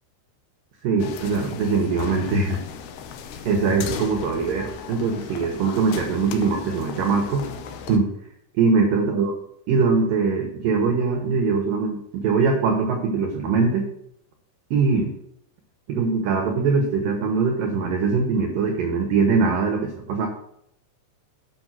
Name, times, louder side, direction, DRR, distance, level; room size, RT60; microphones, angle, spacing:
voice 1, 0.8-2.6 3.5-7.4 7.9-8.1 8.5-9.3 9.7-13.9 14.7-15.1 15.9-20.3, right 4 dB, 85° right, 2 dB, 1.9 m, -22 dB
sound 1, 1.0-8.0, left 6 dB, 85° left, 2.2 m, -36 dB
8.6 x 5.6 x 6.2 m, 0.75 s
omnidirectional pair, 5.6 m